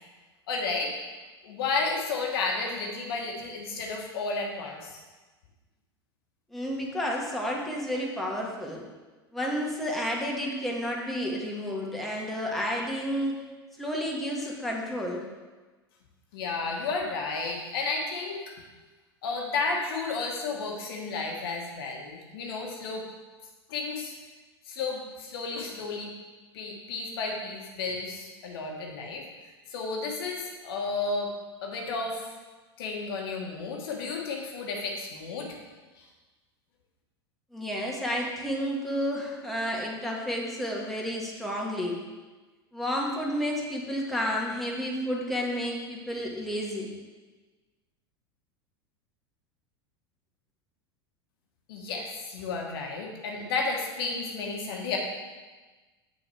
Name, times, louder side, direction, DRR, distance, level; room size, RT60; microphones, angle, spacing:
voice 1, 0.5-0.9 1.4-5.0 16.3-18.5 19.2-23.0 23.7-24.1 24.6-26.1 26.5-29.3 29.7-31.3 31.6-32.3 32.8-35.6 36.0-36.1 51.7-55.0, left 4 dB, 65° left, 0 dB, 1.5 m, -32 dB
voice 2, 6.5-8.8 9.3-13.4 13.8-15.2 37.5-42.0 42.7-46.9, equal, ahead, -3 dB, 1.9 m, -31 dB
8.0 x 6.2 x 4.5 m, 1.3 s
figure-of-eight pair, 85°, 14 cm